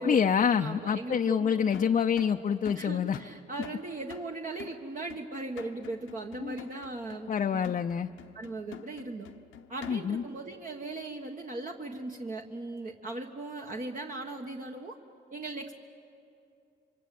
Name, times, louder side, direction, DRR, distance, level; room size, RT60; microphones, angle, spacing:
voice 1, 0.0-3.2 6.4-6.6 7.3-8.1 9.9-10.2, left 7 dB, 40° left, 4 dB, 0.6 m, -27 dB
voice 2, 0.6-1.6 2.7-7.6 8.3-9.3 9.7-15.0 15.3-15.7, right 2 dB, 40° right, 1 dB, 1.6 m, -38 dB
sound 1, 1.7-10.3, left 10 dB, 90° left, 1.0 m, -48 dB
27.5 x 24.5 x 7.8 m, 2.6 s
cardioid pair, 90°, 20 cm